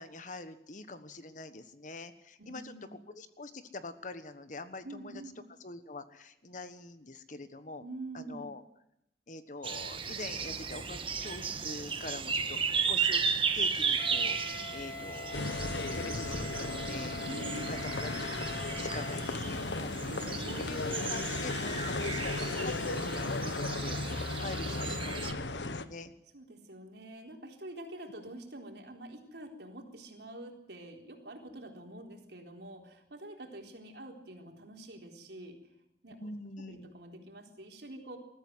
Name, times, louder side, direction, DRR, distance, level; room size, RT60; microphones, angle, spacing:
voice 1, 0.0-5.2 5.6-7.9 8.1-8.6 9.3-12.6 12.9-17.2 17.6-18.1 18.7-19.9 20.4-26.1 36.2-36.9, left 2 dB, 45° left, 11 dB, 1.3 m, -44 dB
voice 2, 2.4-3.0 4.8-5.4 7.8-8.5 17.2-17.8 20.1-20.6 26.3-35.6 36.0-36.3 36.6-38.2, right 1 dB, 70° right, 2 dB, 4.1 m, -46 dB
sound 1, 9.6-25.3, right 6 dB, 30° right, 1.4 m, -35 dB
Wind instrument woodwind instrument, 14.0-19.3, left 3 dB, 60° left, 2.0 m, -44 dB
sound 2, 15.3-25.9, left 3 dB, 85° left, 1.2 m, -36 dB
21.0 x 14.5 x 9.6 m, 0.79 s
head